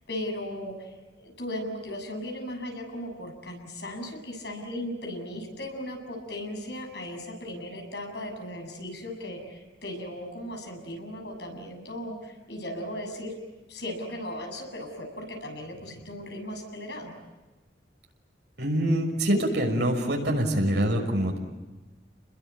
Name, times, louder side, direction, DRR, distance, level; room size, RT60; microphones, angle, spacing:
voice 1, 0.1-13.3 13.7-17.1, left 1 dB, 65° left, 3 dB, 7.4 m, -37 dB
voice 2, 18.6-21.4, right 1 dB, 70° right, 2 dB, 6.0 m, -25 dB
29.5 x 21.5 x 9.1 m, 1.2 s
head